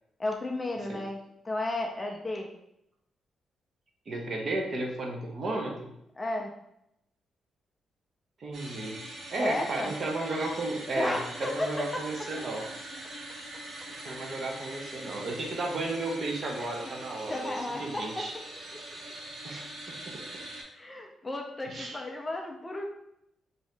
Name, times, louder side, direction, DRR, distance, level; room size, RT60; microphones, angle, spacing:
voice 1, 0.2-1.2 1.4-2.5 6.2-6.5 9.4-9.9 11.0-11.7 16.6-16.7 17.3-18.3 18.7-18.8 20.7-22.8, left 2 dB, 15° left, 2 dB, 0.3 m, -33 dB
voice 2, 4.1-5.8 8.4-9.0 9.3-12.7 14.0-17.5 17.8-18.3 19.4-20.2 21.6-22.0, right 2 dB, 40° right, 1 dB, 0.6 m, -33 dB
sound 1, 8.5-20.6, right 1 dB, 80° right, 0.9 m, -43 dB
2.7 x 2.6 x 3.2 m, 0.80 s
wide cardioid pair, 160°, 0 cm